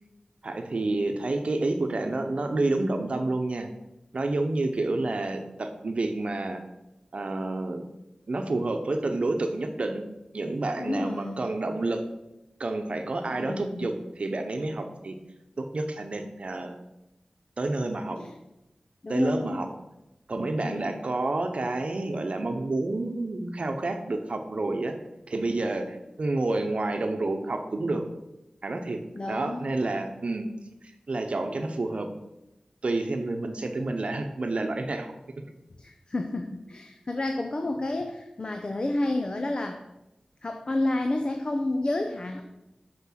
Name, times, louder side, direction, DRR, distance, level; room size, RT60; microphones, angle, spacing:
voice 1, 0.4-3.7 4.1-6.6 7.1-7.8 8.3-10.0 10.3-12.0 12.6-15.2 15.6-16.8 17.6-18.2 19.1-19.7 20.3-25.0 25.3-28.0 28.6-29.0 29.3-30.5 30.8-32.1 32.8-35.1, right 2 dB, 60° right, 6 dB, 0.8 m, -29 dB
voice 2, 10.8-11.4 13.3-13.9 18.1-18.3 19.0-19.7 20.6-21.0 29.1-29.7 35.8-39.8 40.4-42.4, left 2 dB, 45° left, 5 dB, 0.7 m, -30 dB
6.6 x 6.0 x 5.9 m, 0.93 s
wide cardioid pair, 85°, 2 cm